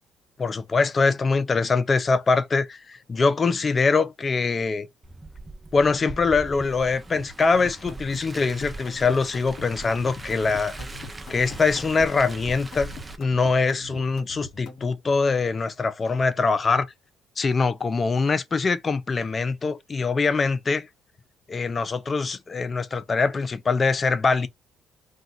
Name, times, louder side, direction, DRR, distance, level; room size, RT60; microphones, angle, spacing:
voice 1, 0.4-4.9 5.7-10.8 11.3-16.9 17.4-20.9 21.5-24.5, left 4 dB, 40° left, 0.5 m, -23 dB
Car, 5.0-13.2, right 2 dB, 20° right, 0.6 m, -40 dB
sound 1, 7.1-14.9, left 3 dB, 60° left, 1.0 m, -41 dB
2.4 x 2.4 x 3.9 m
supercardioid pair, 60°, 0 cm